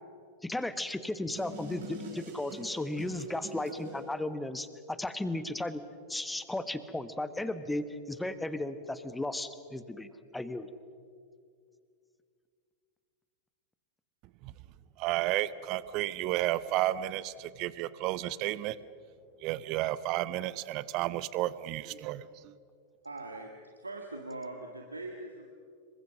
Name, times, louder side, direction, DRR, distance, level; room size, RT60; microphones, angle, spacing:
voice 1, 0.4-5.8 6.1-10.1 10.3-10.7, left 1 dB, 5° left, 13 dB, 1.3 m, -35 dB
sound 1, 1.4-4.0, right 1 dB, 60° right, 8.0 m, -44 dB
voice 2, 15.0-18.8 19.4-22.5, right 15 dB, 40° right, 18 dB, 0.8 m, -32 dB
voice 3, 23.0-25.5, right 2 dB, 80° right, 2 dB, 1.8 m, -42 dB
27.0 x 23.5 x 6.4 m, 2.3 s
figure-of-eight pair, 90°, 0 cm